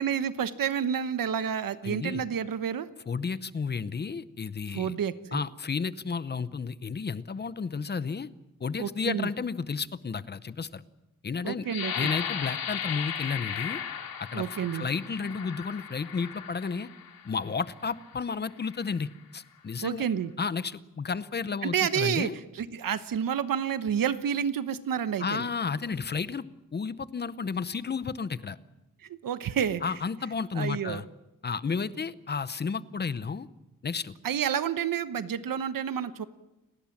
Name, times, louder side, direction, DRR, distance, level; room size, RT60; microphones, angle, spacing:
voice 1, 0.0-2.9 4.7-5.4 8.8-9.3 11.4-12.1 14.3-14.9 19.8-20.3 21.6-22.3 22.5-25.5 29.1-29.8 30.5-31.0 34.2-36.3, right 8 dB, 70° right, 12 dB, 1.1 m, -29 dB
voice 2, 1.8-2.2 3.1-4.9 5.3-8.3 8.6-10.8 11.2-11.7 11.9-13.8 14.2-16.9 17.2-20.0 20.4-22.4 25.2-26.4 26.7-28.6 29.8-31.1 31.4-33.5 33.8-34.1, left 5 dB, 30° left, 15 dB, 0.8 m, -32 dB
sound 1, 11.7-17.3 18.0-18.1 18.6-19.1, left 8 dB, 85° left, 2.6 m, -36 dB
30.0 x 19.5 x 7.3 m, 1.0 s
wide cardioid pair, 180°, 34 cm